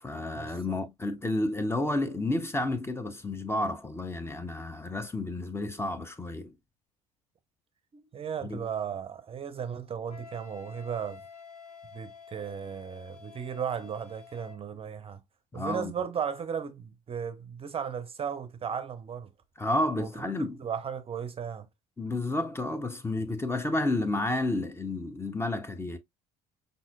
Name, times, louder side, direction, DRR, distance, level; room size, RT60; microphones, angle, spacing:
voice 1, 0.0-6.6 8.4-8.7 15.5-15.9 19.6-20.7 22.0-26.0, left 2 dB, 15° left, 0.7 m, -31 dB
voice 2, 7.9-11.2 11.9-15.2 15.5-19.3 20.0-20.1 20.6-21.7, right 7 dB, 30° right, 0.6 m, -35 dB
Wind instrument woodwind instrument, 10.1-14.6, left 6 dB, 85° left, 0.7 m, -49 dB
5.5 x 2.7 x 2.2 m
figure-of-eight pair, 55°, 19 cm